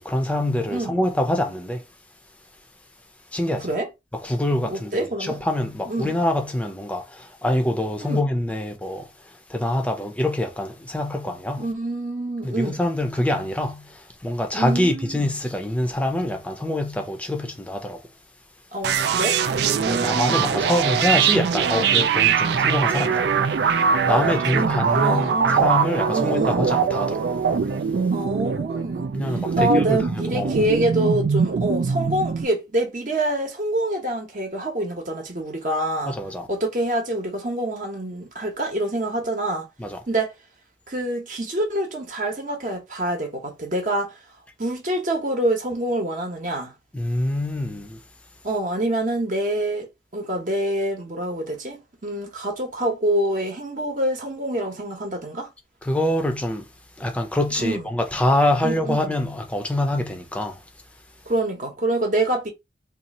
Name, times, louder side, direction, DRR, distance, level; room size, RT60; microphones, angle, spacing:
voice 1, 0.0-1.8 3.3-3.7 4.2-9.1 9.5-11.7 12.4-18.0 19.8-23.3 23.6-23.7 24.0-27.2 29.1-30.7 36.0-36.5 39.8-40.0 46.9-48.0 55.8-56.7 57.0-60.6, left 1 dB, 5° left, 0.6 m, -25 dB
voice 2, 0.7-1.0 3.6-3.9 4.7-5.4 5.9-6.2 8.0-8.3 11.6-12.8 14.5-15.3 18.7-20.6 24.1-25.7 26.1-26.7 28.1-36.2 36.5-39.7 40.1-40.3 40.9-44.2 44.6-46.7 48.4-55.5 57.6-57.8 58.6-59.1 61.3-62.5, right 1 dB, 45° right, 0.9 m, -26 dB
sound 1, 18.8-32.4, right 6 dB, 65° right, 0.4 m, -22 dB
2.7 x 2.5 x 4.1 m
head